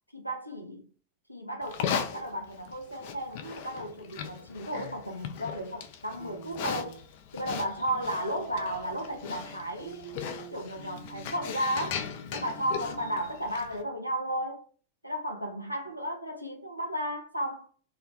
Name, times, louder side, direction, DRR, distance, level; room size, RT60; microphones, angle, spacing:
voice 1, 0.1-0.9 1.3-7.0 7.3-10.1 10.5-12.0 12.3-14.7 15.0-17.7, equal, 90° right, 0.3 m, -34 dB
Livestock farm animals working animals, 1.6-13.8, left 8 dB, 50° left, 0.3 m, -38 dB
sound 1, 6.2-7.0 8.1-13.2, right 4 dB, 30° right, 1.0 m, -47 dB
2.1 x 2.0 x 2.8 m
figure-of-eight pair, 90°, 0 cm